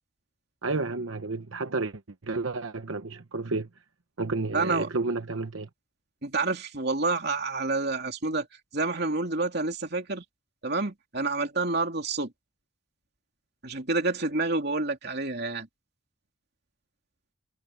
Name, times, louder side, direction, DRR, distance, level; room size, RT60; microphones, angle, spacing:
voice 1, 0.6-3.7 4.2-5.7, right 3 dB, 75° right, 1.0 m, -31 dB
voice 2, 4.5-4.9 6.2-8.5 8.7-10.2 10.6-12.3 13.6-15.7, right 3 dB, 50° right, 3.1 m, -28 dB
head